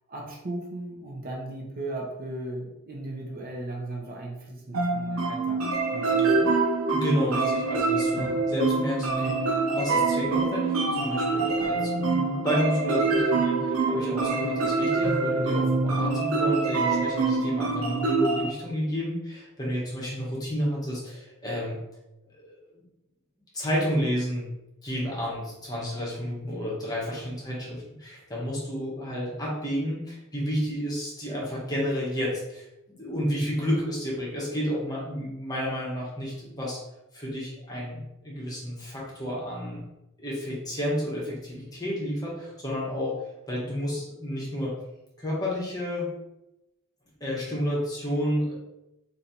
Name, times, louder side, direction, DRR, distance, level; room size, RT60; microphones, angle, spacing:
voice 1, 0.1-5.7 5.9-6.6, right 2 dB, 45° right, -2 dB, 0.7 m, -37 dB
sound 1, 4.7-18.5, right 3 dB, 85° right, 0.7 m, -25 dB
voice 2, 6.9-9.5 9.7-21.8 22.4-22.8 23.5-24.5 24.8-36.8 37.1-39.8 40.2-43.1 43.5-44.7 45.2-46.1 47.2-48.5, equal, 20° left, -5 dB, 1.1 m, -31 dB
3.2 x 2.7 x 4.1 m, 0.92 s
head